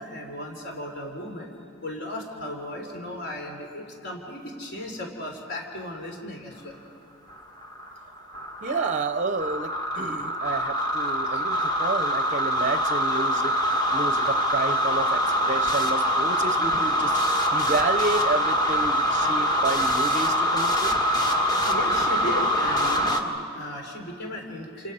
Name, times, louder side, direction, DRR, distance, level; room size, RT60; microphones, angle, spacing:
voice 1, 0.0-1.5 1.8-6.8 11.3-11.4 21.6-24.9, left 1 dB, 50° left, 1 dB, 3.5 m, -36 dB
sound 1, 7.3-23.2, equal, 20° left, 1.6 m, -24 dB
voice 2, 8.6-20.9, right 3 dB, 35° right, 10 dB, 0.7 m, -30 dB
29.5 x 28.0 x 5.5 m, 2.5 s
head